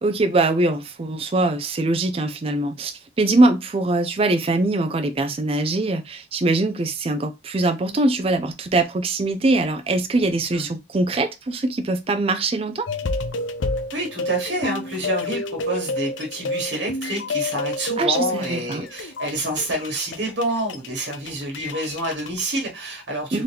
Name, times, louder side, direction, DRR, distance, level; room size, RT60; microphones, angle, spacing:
voice 1, 0.0-12.9 18.0-18.9 23.3-23.4, right 2 dB, 30° right, 0.4 m, -22 dB
sound 1, 12.9-22.4, left 2 dB, 80° left, 0.6 m, -29 dB
voice 2, 13.9-23.4, right 1 dB, 70° right, 1.4 m, -28 dB
3.8 x 2.8 x 3.4 m
head